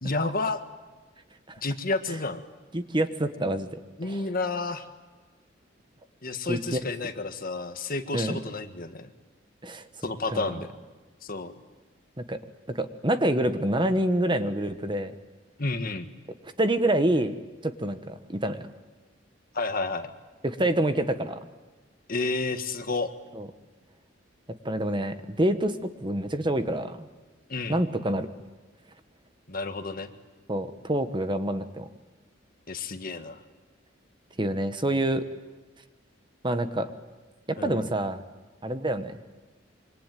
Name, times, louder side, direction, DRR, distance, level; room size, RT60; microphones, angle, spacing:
voice 1, 0.0-0.6 1.6-2.4 4.0-4.9 6.2-9.1 10.0-10.7 11.2-11.5 15.6-16.1 19.5-20.1 22.1-23.1 27.5-27.8 29.5-30.1 32.7-33.4 37.6-37.9, left 3 dB, 50° left, 8 dB, 1.7 m, -30 dB
voice 2, 2.7-4.2 6.5-6.8 8.1-8.4 9.6-9.9 10.3-10.6 12.2-12.4 12.7-15.1 16.6-17.3 17.6-18.7 20.4-21.4 23.3-23.5 24.6-27.1 27.7-28.3 30.5-31.9 34.4-35.2 36.4-36.9 37.5-38.2 38.6-39.2, right 1 dB, 25° right, 9 dB, 1.3 m, -27 dB
26.0 x 24.5 x 9.2 m, 1.3 s
head